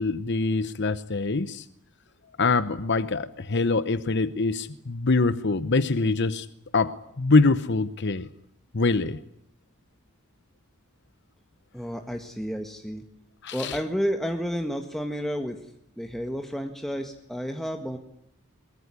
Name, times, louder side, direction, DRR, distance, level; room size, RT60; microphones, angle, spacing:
voice 1, 0.0-1.7 2.4-6.5 6.7-8.3 8.7-9.2 13.4-13.8, left 3 dB, 55° left, 14 dB, 0.9 m, -24 dB
voice 2, 11.7-13.0 13.5-15.6 16.0-18.0, equal, ahead, 5 dB, 1.6 m, -31 dB
22.5 x 21.5 x 9.8 m, 0.77 s
head